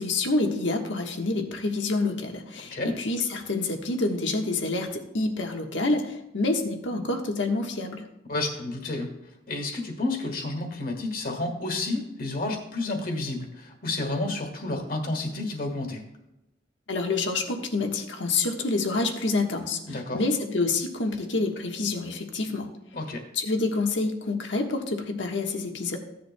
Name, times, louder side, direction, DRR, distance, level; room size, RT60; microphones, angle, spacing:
voice 1, 0.0-8.1 16.9-22.7 23.3-26.0, left 3 dB, 85° left, 3 dB, 1.3 m, -27 dB
voice 2, 8.3-9.1 9.5-16.0 19.9-20.2 22.9-23.2, left 2 dB, 50° left, 3 dB, 1.9 m, -30 dB
15.5 x 10.0 x 2.2 m, 0.91 s
head